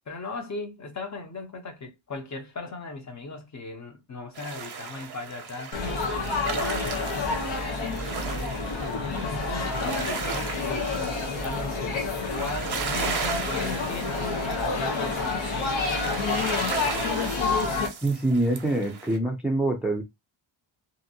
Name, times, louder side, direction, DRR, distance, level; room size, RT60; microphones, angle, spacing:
voice 1, 0.1-5.8 6.3-7.5 9.0-10.9 11.3-13.1 13.4-14.3 14.6-15.7, left 3 dB, 40° left, 0.8 m, -37 dB
sound 1, 4.3-19.2, right 6 dB, 55° right, 0.6 m, -36 dB
Laughter / Chatter / Crowd, 5.7-17.9, left 3 dB, 85° left, 1.0 m, -29 dB
voice 2, 18.0-20.0, right 1 dB, 5° right, 0.4 m, -25 dB
2.8 x 2.5 x 2.7 m
wide cardioid pair, 145°, 46 cm